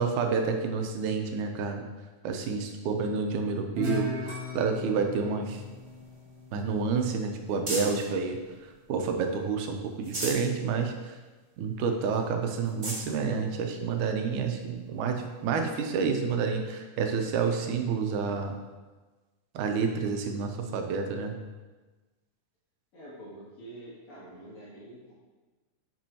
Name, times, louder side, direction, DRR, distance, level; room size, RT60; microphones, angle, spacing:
voice 1, 0.0-1.9 2.2-5.6 6.5-8.4 8.9-11.2 11.6-18.6 19.6-21.4, right 5 dB, 85° right, 4 dB, 2.2 m, -29 dB
Guitar, 3.8-7.0, left 2 dB, 45° right, 1.9 m, -38 dB
sound 1, 4.3-7.2 7.7-8.2, left 1 dB, 35° left, 1.7 m, -50 dB
sound 2, 5.5-8.1 8.7-9.4 9.8-10.5 11.0-11.1 11.4-11.5 12.1-12.2 12.6-13.1 13.9-14.0 15.8-15.9, right 1 dB, 25° right, 1.7 m, -38 dB
voice 2, 22.9-25.1, right 1 dB, 75° left, -8 dB, 3.8 m, -46 dB
9.0 x 5.3 x 2.8 m, 1.3 s
omnidirectional pair, 3.4 m